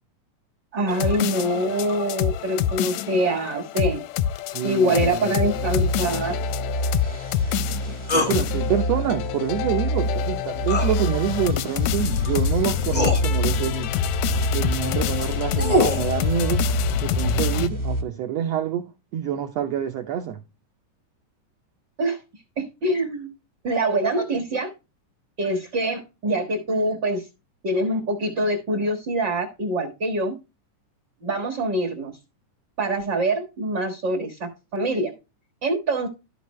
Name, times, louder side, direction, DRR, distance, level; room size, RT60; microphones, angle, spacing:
voice 1, 0.7-4.0 4.6-6.4 22.0-22.2 22.6-23.3 23.6-24.7 25.4-27.3 27.6-30.4 31.2-32.1 32.8-35.1 35.6-36.1, right 1 dB, 45° right, 1.6 m, -24 dB
sound 1, 0.9-17.7, left 11 dB, 80° left, 1.7 m, -27 dB
voice 2, 4.5-5.3 8.1-13.9 14.5-16.7 17.0-20.4, right 10 dB, 75° right, 1.5 m, -27 dB
sound 2, 5.5-18.0, equal, 20° left, 0.6 m, -28 dB
sound 3, 8.1-8.4 10.7-10.9 12.3-12.4 12.9-13.2 15.2-16.1, left 1 dB, 65° left, 0.4 m, -22 dB
13.0 x 5.1 x 3.0 m
omnidirectional pair, 3.8 m